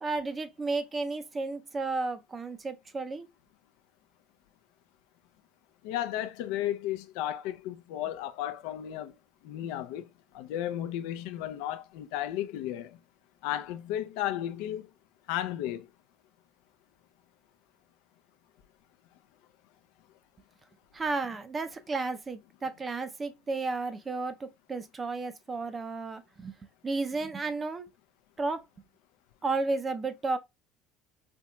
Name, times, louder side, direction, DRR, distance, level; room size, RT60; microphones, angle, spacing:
voice 1, 0.0-3.3 20.9-26.6 26.8-27.9 28.4-28.6 29.4-30.4, right 3 dB, 20° right, 0.5 m, -33 dB
voice 2, 5.8-9.1 9.4-10.1 10.3-13.0 13.4-14.9 15.3-15.9, left 12 dB, 80° left, 0.4 m, -34 dB
4.3 x 2.9 x 2.2 m
cardioid pair, 145°, 0 cm